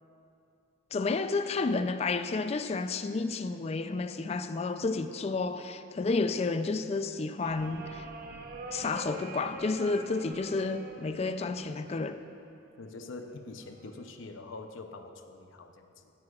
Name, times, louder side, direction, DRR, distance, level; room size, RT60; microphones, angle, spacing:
voice 1, 0.9-8.0 8.7-12.2, left 3 dB, 30° left, 0.3 m, -31 dB
sound 1, 7.4-12.4 13.6-14.1, right 2 dB, 50° right, 0.8 m, -44 dB
voice 2, 12.8-16.1, left 3 dB, 75° left, 0.6 m, -45 dB
16.0 x 9.6 x 2.4 m
head